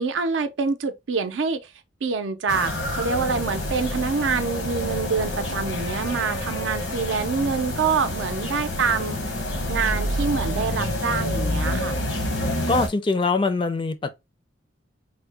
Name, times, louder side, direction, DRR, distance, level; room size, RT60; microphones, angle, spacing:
voice 1, 0.0-1.6 2.0-9.2 9.7-12.0, right 5 dB, 85° right, 0.5 m, -26 dB
sound 1, 2.5-12.9, left 1 dB, 80° left, 0.9 m, -28 dB
voice 2, 12.7-14.1, left 3 dB, 25° left, 0.4 m, -23 dB
3.6 x 2.1 x 3.2 m
head